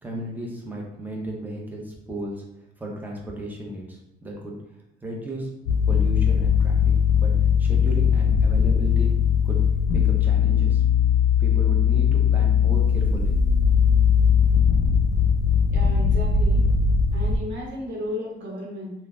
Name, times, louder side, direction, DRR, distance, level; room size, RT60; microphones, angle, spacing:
voice 1, 0.0-2.4 2.8-4.6 5.0-5.5 5.9-7.3 7.6-9.2 9.4-9.6 9.9-10.8 11.4-13.4, right 1 dB, 10° right, -2 dB, 0.7 m, -34 dB
sound 1, 5.7-17.4, left 7 dB, 85° left, 0.5 m, -19 dB
voice 2, 15.7-16.6 17.1-18.9, left 1 dB, 70° right, -2 dB, 1.0 m, -34 dB
3.0 x 2.1 x 2.4 m, 0.85 s
cardioid pair, 90°, 20 cm